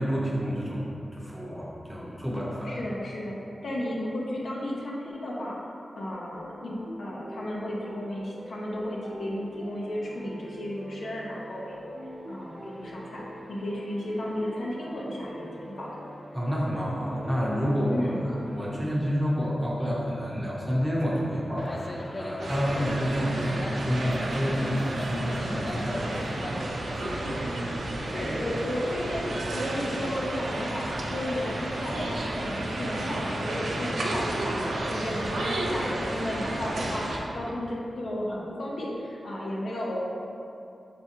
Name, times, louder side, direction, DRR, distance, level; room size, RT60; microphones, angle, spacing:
voice 1, 0.0-2.8 16.3-18.1 18.5-26.2, equal, 5° right, -6 dB, 0.8 m, -29 dB
voice 2, 2.6-3.3 3.6-5.6 6.0-11.8 12.3-13.2 13.5-16.0 17.9-18.2 28.0-40.1, left 1 dB, 75° left, -4 dB, 0.7 m, -34 dB
sound 1, 6.1-18.7, equal, 40° right, 0.7 m, -44 dB
sound 2, 21.6-27.6, left 1 dB, 35° left, 0.4 m, -39 dB
sound 3, 22.4-37.2, right 1 dB, 80° right, 0.5 m, -32 dB
5.1 x 3.4 x 2.9 m, 2.6 s
wide cardioid pair, 115°, 0 cm